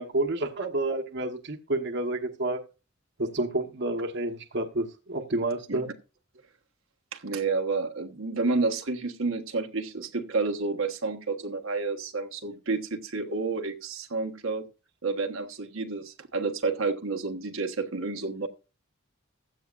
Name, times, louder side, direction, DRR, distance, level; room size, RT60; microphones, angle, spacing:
voice 1, 0.0-2.6 3.2-5.9, right 2 dB, 60° right, 4 dB, 1.2 m, -29 dB
voice 2, 7.1-14.7 15.0-18.5, right 3 dB, 85° right, 4 dB, 1.4 m, -30 dB
15.5 x 11.0 x 2.5 m, 0.32 s
head